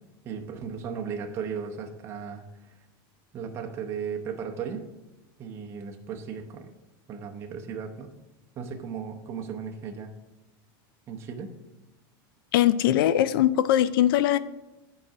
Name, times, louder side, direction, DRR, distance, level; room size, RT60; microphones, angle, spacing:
voice 1, 0.2-2.8 3.3-4.9 5.4-6.7 7.1-8.1 8.6-10.1 11.1-11.5, right 6 dB, 20° right, 2 dB, 0.7 m, -36 dB
voice 2, 12.5-14.4, left 12 dB, 70° left, 16 dB, 0.4 m, -21 dB
8.9 x 4.9 x 5.6 m, 1.0 s
supercardioid pair, 165°, 12 cm